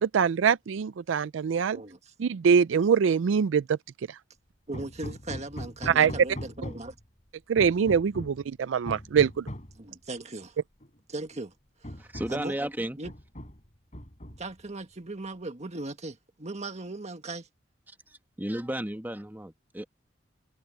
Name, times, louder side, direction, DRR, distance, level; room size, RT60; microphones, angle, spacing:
voice 1, 0.0-1.8 2.2-3.8 4.1-4.2 5.9-6.1 7.5-9.5, right 7 dB, 80° right, 0.4 m, -24 dB
Hammer, 4.7-7.0 7.6-8.4 8.9-9.8 10.8-10.9 11.3-11.4 11.8-12.5 13.0-13.7 13.9-14.6, equal, 40° left, 5.2 m, -40 dB
voice 2, 4.7-6.9 9.8-10.6 11.1-11.5 11.8-12.5 13.0-13.1 14.4-17.5, right 2 dB, 35° right, 1.6 m, -38 dB
voice 3, 12.0-13.0 18.4-19.9, right 1 dB, 10° right, 1.4 m, -33 dB
head